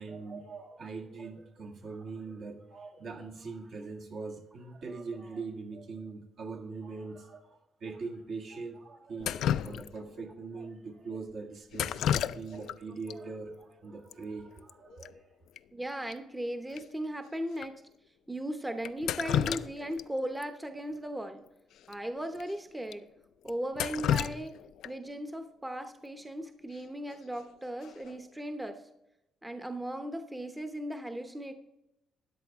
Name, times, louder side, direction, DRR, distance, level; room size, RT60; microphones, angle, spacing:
voice 1, 0.0-15.2, right 4 dB, 60° right, 0 dB, 1.8 m, -42 dB
Drip, 9.2-10.2 11.7-12.8 13.1-13.2 14.1-14.2 14.5-14.7 15.0-15.1 15.6-15.7 16.1-16.2 16.8-16.9 17.6-17.7 18.8-20.0 20.4-20.5 21.8-21.9 22.3-22.4 22.9-23.0 23.5-25.1 27.1-27.4 27.8-28.2, left 10 dB, 80° left, 0.4 m, -32 dB
voice 2, 15.7-17.8 18.3-21.4 21.9-23.1 23.4-28.8 29.4-31.5, right 1 dB, 10° right, 7 dB, 0.8 m, -37 dB
13.0 x 10.0 x 3.6 m, 0.87 s
cardioid pair, 90°, 0 cm